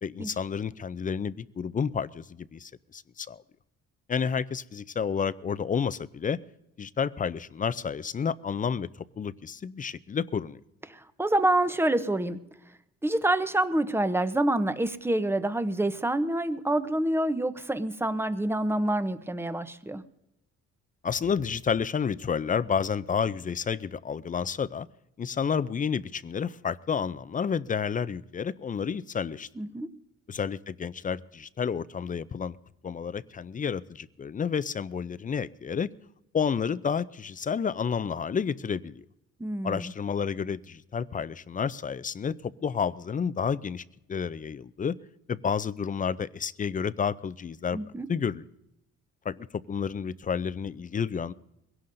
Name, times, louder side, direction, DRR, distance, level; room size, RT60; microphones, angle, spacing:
voice 1, 0.0-3.4 4.1-6.4 6.8-8.9 9.2-10.6 21.0-24.9 25.2-29.5 30.3-32.6 32.8-35.9 36.3-39.0 39.6-43.8 44.1-45.0 45.3-47.8 48.1-48.4 49.2-51.3, left 6 dB, 25° left, 17 dB, 0.4 m, -30 dB
voice 2, 10.9-12.4 13.0-20.0 29.6-29.9 39.4-39.9 47.7-48.1, right 1 dB, 10° right, 12 dB, 0.7 m, -27 dB
22.0 x 17.0 x 2.6 m, 0.84 s
cardioid pair, 90°, 30 cm